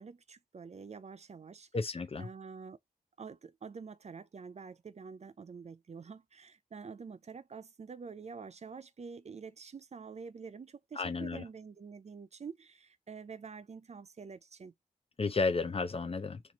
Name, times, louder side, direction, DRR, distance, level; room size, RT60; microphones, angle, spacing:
voice 1, 0.0-1.7 2.2-2.8 3.2-14.7, right 5 dB, 45° right, 0.4 m, -47 dB
voice 2, 1.7-2.3 11.0-11.4 15.2-16.4, left 4 dB, 40° left, 0.5 m, -32 dB
3.0 x 2.5 x 4.1 m
wide cardioid pair, 75°, 15 cm